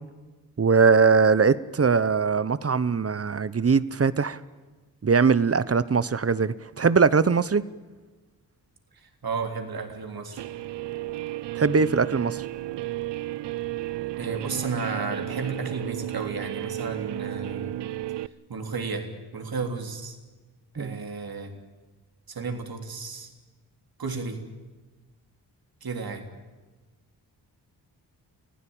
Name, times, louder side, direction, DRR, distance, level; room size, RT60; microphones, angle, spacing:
voice 1, 0.6-4.4 5.0-7.6 11.5-12.5 20.8-21.0, right 5 dB, 35° right, 17 dB, 1.0 m, -21 dB
voice 2, 8.9-10.4 14.2-17.7 18.5-20.2 20.7-21.5 22.3-23.3 24.0-24.4 25.8-26.2, right 4 dB, 55° right, 4 dB, 3.6 m, -33 dB
Guitar, 10.4-18.3, right 14 dB, 75° right, 0.7 m, -33 dB
25.0 x 15.5 x 8.9 m, 1.2 s
cardioid pair, 50°, 42 cm